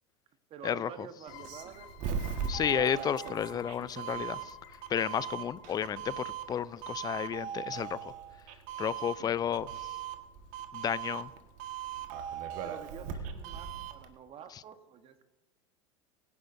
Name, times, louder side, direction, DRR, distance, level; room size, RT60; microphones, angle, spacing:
voice 1, 0.5-2.4 12.6-15.2, right 8 dB, 35° right, 9 dB, 1.3 m, -48 dB
sound 1, 1.3-6.7, left 8 dB, 55° left, 2.5 m, -52 dB
Doorbell, 1.3-14.1, right 8 dB, 50° right, 1.6 m, -39 dB
voice 2, 2.5-4.6 4.9-8.0 8.8-9.7 10.7-11.3, left 9 dB, 25° left, 19 dB, 0.4 m, -32 dB
23.5 x 10.5 x 2.7 m, 1.2 s
hypercardioid pair, 85°, 16 cm